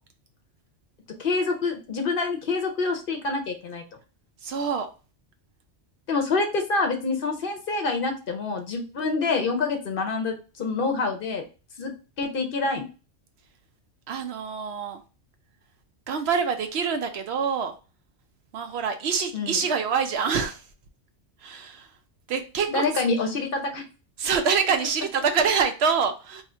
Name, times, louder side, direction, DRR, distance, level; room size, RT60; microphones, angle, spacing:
voice 1, 1.2-3.8 6.1-11.4 11.8-11.9 12.2-12.9 19.3-19.6 22.7-23.8, left 3 dB, 55° left, 4 dB, 0.8 m, -26 dB
voice 2, 4.4-4.9 14.1-15.0 16.1-17.7 18.5-20.6 21.4-21.9 22.3-22.8 24.2-26.4, right 6 dB, 70° right, 7 dB, 0.8 m, -25 dB
2.7 x 2.4 x 4.2 m, 0.32 s
omnidirectional pair, 1.2 m